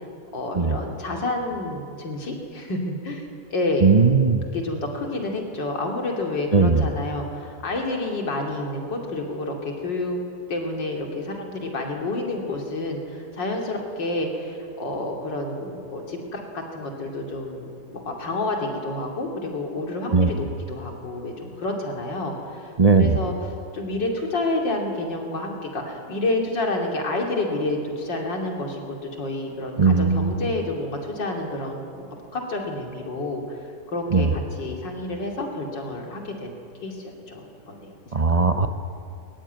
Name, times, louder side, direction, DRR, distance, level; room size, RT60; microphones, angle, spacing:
voice 1, 0.3-3.9 4.5-10.2 10.5-23.3 23.7-38.4, left 2 dB, 85° left, 1 dB, 3.4 m, -29 dB
voice 2, 3.8-4.4 6.5-6.9 20.1-20.3 22.8-23.2 29.8-30.3 34.1-34.3 38.1-38.7, right 4 dB, 30° right, 8 dB, 0.7 m, -18 dB
22.5 x 21.5 x 9.3 m, 2.5 s
omnidirectional pair, 1.9 m